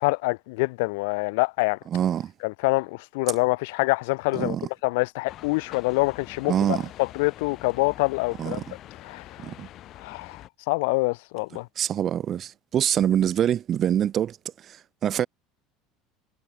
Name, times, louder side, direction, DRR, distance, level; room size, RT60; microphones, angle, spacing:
voice 1, 0.0-1.8 2.4-4.6 4.8-8.6 9.0-9.2 10.0-11.7, left 26 dB, 85° left, 0.7 m, -26 dB
voice 2, 1.9-2.3 4.3-4.7 6.5-6.9 8.4-8.8 9.4-9.7 11.8-14.4 14.7-15.3, right 10 dB, 35° right, 0.4 m, -25 dB
sound 1, 5.3-10.5, left 13 dB, 45° left, 2.4 m, -45 dB
cardioid pair, 150°, 0 cm